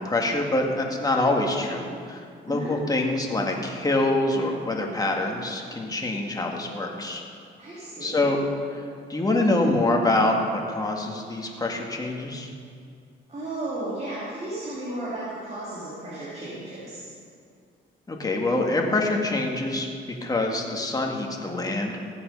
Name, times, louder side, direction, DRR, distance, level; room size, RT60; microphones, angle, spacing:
voice 1, 0.0-7.2 8.0-8.4 8.7-8.8 9.1-12.5 18.1-19.9 20.2-22.0, left 2 dB, 20° left, 0 dB, 2.1 m, -25 dB
voice 2, 7.6-8.3 13.3-17.1, right 1 dB, 35° right, -8 dB, 3.7 m, -34 dB
16.0 x 8.5 x 5.5 m, 2.2 s
cardioid pair, 90°, 20 cm